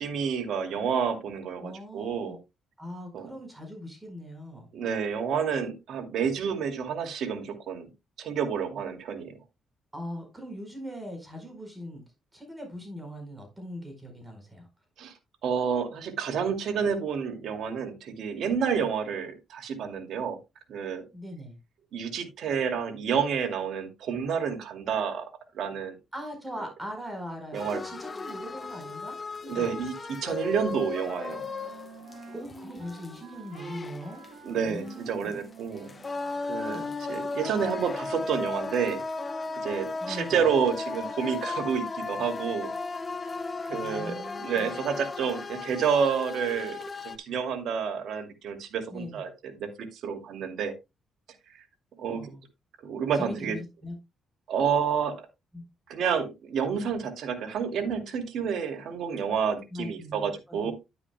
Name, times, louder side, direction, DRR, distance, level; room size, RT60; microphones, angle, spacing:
voice 1, 0.0-2.4 3.1-3.3 4.7-7.9 8.2-9.3 15.0-15.1 15.4-20.4 20.7-21.0 21.9-25.2 25.5-25.9 27.5-27.8 29.5-31.4 34.4-35.9 36.5-39.0 39.6-42.7 43.7-46.8 47.0-50.7 52.0-52.3 52.8-53.6 54.5-55.3 55.9-60.7, right 7 dB, 70° right, 5 dB, 2.4 m, -29 dB
voice 2, 1.6-2.4 2.8-4.7 9.9-12.0 12.3-14.7 21.1-21.6 26.1-29.8 32.3-34.2 34.5-35.4 36.7-37.0 40.0-40.4 43.7-44.7 48.9-49.2 52.1-52.4 53.1-53.9 55.5-55.6 59.7-60.7, equal, 15° right, 4 dB, 4.5 m, -41 dB
sound 1, 27.5-47.2, left 3 dB, 30° left, 1.0 m, -36 dB
Wind instrument woodwind instrument, 30.9-36.6, right 3 dB, 85° right, 3.0 m, -47 dB
10.5 x 9.7 x 2.2 m, 0.23 s
cardioid pair, 90°, 0 cm